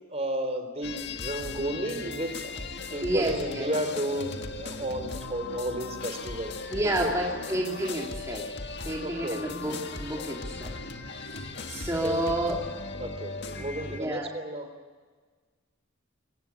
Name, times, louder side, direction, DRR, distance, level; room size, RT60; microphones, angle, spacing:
voice 1, 0.0-2.5 2.9-6.5 7.0-7.1 9.0-9.5 12.0-12.2 13.0-14.7, right 1 dB, 30° right, 8 dB, 3.5 m, -32 dB
sound 1, 0.8-14.0, left 3 dB, 55° left, 1.7 m, -38 dB
voice 2, 3.0-3.7 6.7-8.5 8.9-10.8 11.1-12.6 13.6-14.3, right 1 dB, 15° right, -2 dB, 2.7 m, -30 dB
23.0 x 19.0 x 9.7 m, 1.5 s
head